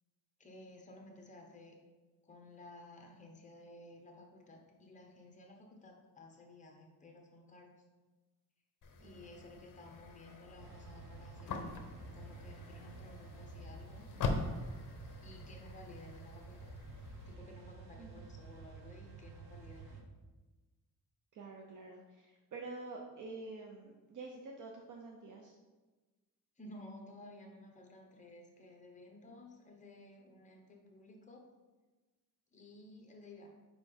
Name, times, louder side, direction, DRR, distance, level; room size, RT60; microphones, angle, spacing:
voice 1, 0.4-1.8 2.2-7.7 9.0-11.8 12.1-14.0 15.2-16.7 17.2-20.0 26.6-31.4 32.5-33.5, left 2 dB, 20° left, 1 dB, 0.9 m, -55 dB
sound 1, 8.8-17.3, left 3 dB, 55° left, 0.7 m, -43 dB
voice 2, 9.0-9.5 18.0-18.1 21.3-25.6, right 3 dB, 50° right, 1 dB, 0.6 m, -48 dB
sound 2, 10.6-20.0, right 5 dB, 75° right, 0.9 m, -52 dB
4.7 x 4.1 x 5.0 m, 1.2 s
wide cardioid pair, 155°, 39 cm